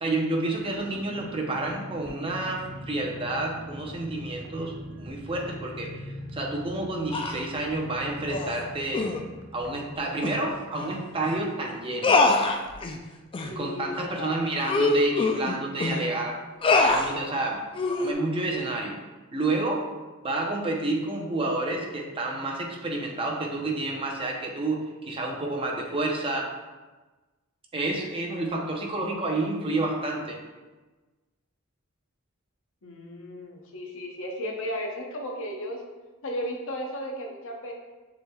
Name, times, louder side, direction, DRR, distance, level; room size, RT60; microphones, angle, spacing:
voice 1, 0.0-9.0 9.5-12.2 13.5-16.4 16.6-17.7 18.0-18.9 19.3-19.9 20.2-26.5 27.7-30.4, right 2 dB, 25° right, -1 dB, 0.7 m, -29 dB
sound 1, 0.6-12.9 13.2-13.3 13.6-13.8, equal, 65° right, 0.7 m, -42 dB
sound 2, 7.1-7.5 8.3-8.6 8.9-9.2 10.2-10.4 10.8-10.9 11.2-11.4 12.0-13.0 13.3-13.5 14.0-14.1 14.6-16.0 16.6-17.1 17.7-18.1, left 3 dB, 25° left, 0.3 m, -24 dB
voice 2, 13.5-14.5 32.8-35.8 36.2-37.7, equal, 65° left, 1 dB, 0.7 m, -35 dB
6.9 x 3.3 x 2.3 m, 1.2 s
head